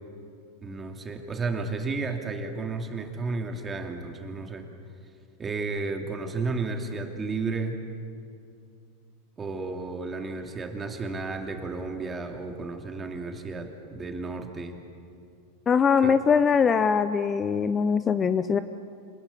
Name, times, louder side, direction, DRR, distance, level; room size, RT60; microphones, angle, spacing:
voice 1, 0.6-4.7 5.4-7.7 9.4-14.7 16.0-16.1, right 3 dB, 20° right, 4 dB, 2.6 m, -32 dB
voice 2, 15.7-18.6, left 6 dB, 25° left, 12 dB, 0.7 m, -22 dB
26.5 x 20.0 x 8.4 m, 2.5 s
hypercardioid pair, 120°, 0 cm